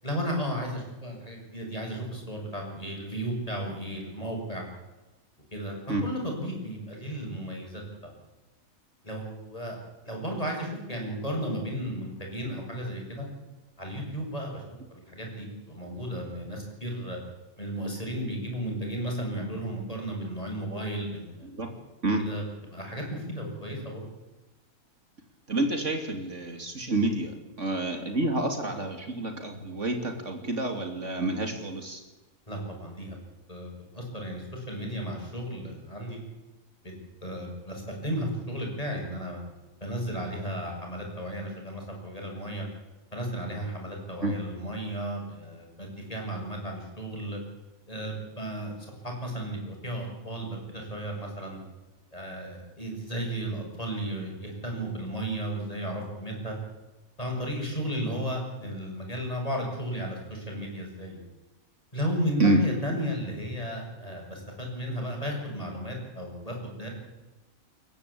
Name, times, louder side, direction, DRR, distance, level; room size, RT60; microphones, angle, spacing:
voice 1, 0.0-4.6 5.5-5.8 6.0-8.1 9.0-9.8 10.0-13.3 13.8-14.6 14.9-17.2 17.6-21.5 22.2-22.4 22.7-24.0 32.5-33.2 33.5-36.2 36.8-36.9 37.2-39.4 39.8-42.7 43.1-47.4 47.9-51.6 52.1-56.6 57.2-61.2 61.9-66.9, equal, 25° left, 0 dB, 7.4 m, -34 dB
voice 2, 25.5-32.0 44.2-44.3 62.4-62.6, right 2 dB, 60° right, 4 dB, 3.1 m, -28 dB
29.0 x 14.5 x 8.6 m, 1.1 s
omnidirectional pair, 1.4 m